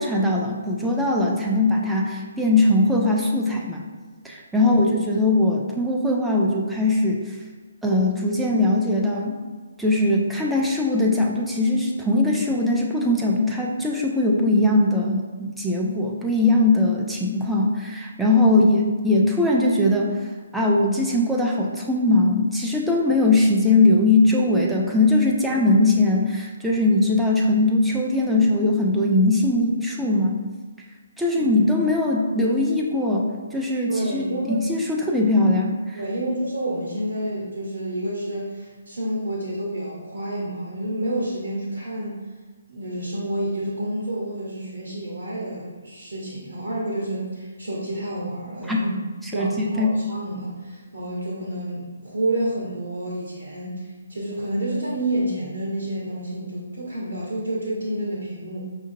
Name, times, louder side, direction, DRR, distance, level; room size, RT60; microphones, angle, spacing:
voice 1, 0.0-3.8 4.2-7.4 7.8-9.4 9.8-20.2 20.5-30.4 31.2-36.0 48.7-48.8 49.3-49.9, left 2 dB, ahead, -3 dB, 0.3 m, -20 dB
voice 2, 33.9-34.6 35.9-42.2 42.7-49.0 49.3-58.6, right 1 dB, 60° right, -4 dB, 0.8 m, -29 dB
5.1 x 2.4 x 2.6 m, 1.4 s
figure-of-eight pair, 135°, 0 cm